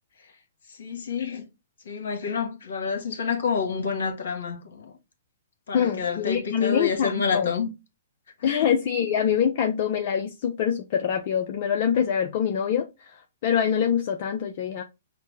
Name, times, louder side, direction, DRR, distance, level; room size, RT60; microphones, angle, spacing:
voice 1, 0.7-1.5 1.8-4.9 5.7-7.7 8.4-8.7, left 5 dB, 70° left, 1.3 m, -29 dB
voice 2, 5.7-7.5 8.4-14.8, left 8 dB, 50° left, 0.5 m, -25 dB
5.7 x 2.1 x 3.3 m
hypercardioid pair, 125°, 0 cm